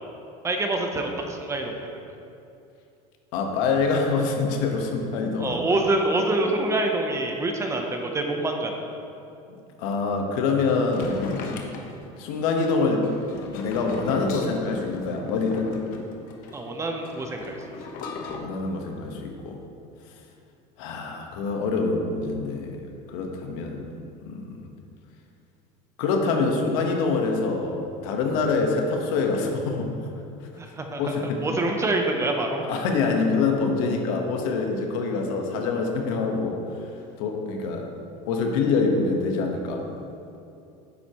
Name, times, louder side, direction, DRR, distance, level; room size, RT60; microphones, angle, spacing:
voice 1, 0.4-1.9 5.4-8.8 16.5-17.6 30.6-32.7, right 2 dB, 15° right, 3 dB, 0.7 m, -26 dB
voice 2, 3.3-5.7 9.5-11.8 12.2-13.1 13.6-15.8 18.2-19.6 20.8-24.6 26.0-29.9 31.0-31.4 32.6-36.6 37.2-37.9 38.2-39.9, left 4 dB, 75° left, 2 dB, 1.2 m, -25 dB
sound 1, 10.9-18.4, left 4 dB, 55° left, 1.0 m, -36 dB
9.6 x 7.9 x 3.0 m, 2.7 s
cardioid pair, 140°, 17 cm